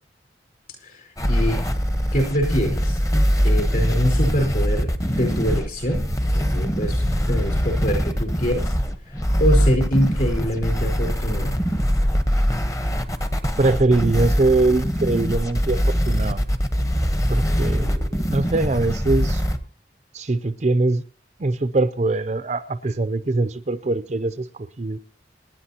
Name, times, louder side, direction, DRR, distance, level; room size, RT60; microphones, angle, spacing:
voice 1, 0.8-1.7 2.1-3.0 3.4-8.7 9.4-11.6, equal, 50° left, 4.7 m, -25 dB
sound 1, 1.2-19.6, equal, 20° left, 1.0 m, -22 dB
voice 2, 13.6-16.4 17.3-19.4 20.1-21.0 21.4-25.0, right 2 dB, 40° right, 0.5 m, -22 dB
26.5 x 10.5 x 2.9 m
head